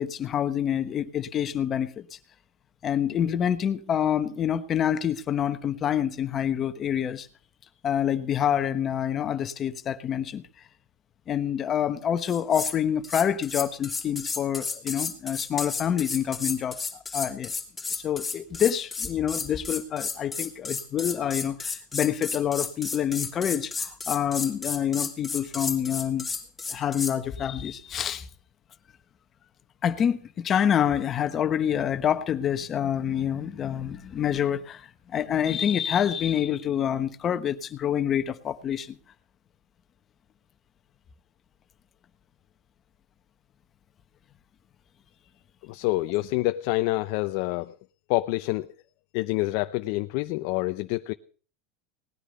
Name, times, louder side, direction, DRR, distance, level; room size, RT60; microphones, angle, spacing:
voice 1, 0.0-2.2 2.8-7.3 7.8-10.4 11.3-16.8 17.1-17.5 18.0-26.3 26.7-28.3 29.8-39.0, left 9 dB, 35° left, 1.1 m, -27 dB
sound 1, 12.3-12.8 13.0-27.2, left 4 dB, 15° left, 2.9 m, -32 dB
voice 2, 45.7-47.7 48.1-48.7 49.1-51.1, left 19 dB, 60° left, 0.6 m, -27 dB
18.5 x 10.0 x 5.4 m
supercardioid pair, 120°, 0 cm